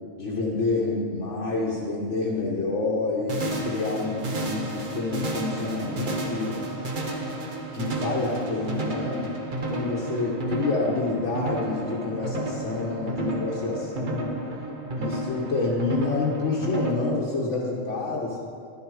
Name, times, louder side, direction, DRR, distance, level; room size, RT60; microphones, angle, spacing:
voice 1, 0.2-6.5 7.7-9.3 9.7-14.3 15.0-18.4, left 3 dB, 60° left, -4 dB, 1.4 m, -28 dB
sound 1, 3.3-16.9, right 2 dB, 40° right, 1.1 m, -32 dB
11.5 x 7.9 x 4.8 m, 2.4 s
omnidirectional pair, 1.4 m